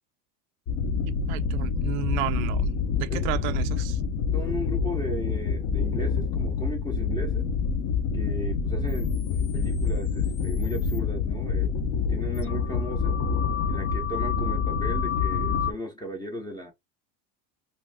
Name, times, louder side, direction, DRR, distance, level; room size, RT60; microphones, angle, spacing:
sound 1, 0.7-15.7, left 5 dB, 50° left, 0.8 m, -27 dB
voice 1, 1.1-2.7 3.0-4.0, right 16 dB, 80° right, 0.5 m, -32 dB
voice 2, 4.3-7.5 8.1-11.7 12.1-13.2 13.7-16.7, left 1 dB, 10° left, 0.6 m, -36 dB
2.6 x 2.6 x 3.4 m
cardioid pair, 150°, 40 cm